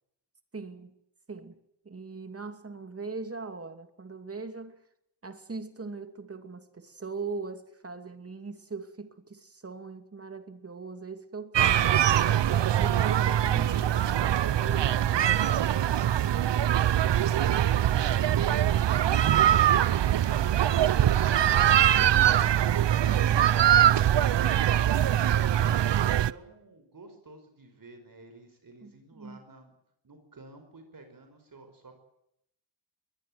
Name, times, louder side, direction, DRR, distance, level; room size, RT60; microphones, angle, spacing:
voice 1, 0.5-0.9 1.3-1.6 1.8-4.8 5.2-15.3 28.8-29.4, right 4 dB, 30° right, 2.7 m, -40 dB
sound 1, 11.5-26.3, right 11 dB, 65° right, 0.8 m, -23 dB
voice 2, 16.8-29.7 30.0-32.0, right 3 dB, 45° right, 5.3 m, -52 dB
22.5 x 20.0 x 7.7 m
wide cardioid pair, 125°, 46 cm